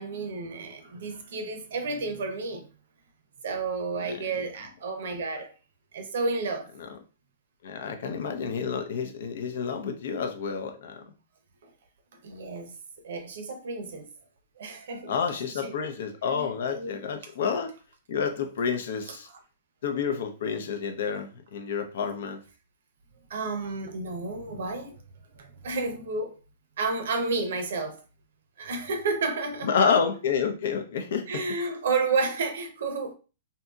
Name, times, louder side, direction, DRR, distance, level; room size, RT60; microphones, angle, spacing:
voice 1, 0.0-2.7 3.4-5.5 5.9-6.7 11.6-11.7 12.2-14.1 14.6-15.1 15.5-15.8 16.3-17.0 23.3-25.0 25.3-26.4 26.8-28.0 28.6-29.7 31.3-33.1, right 3 dB, 75° right, 0.6 m, -31 dB
voice 2, 4.0-4.4 6.8-6.9 7.6-11.0 15.1-17.7 18.1-19.3 19.8-22.4 29.6-31.4, left 6 dB, 70° left, 0.6 m, -29 dB
2.7 x 2.6 x 2.3 m
hypercardioid pair, 135°, 0 cm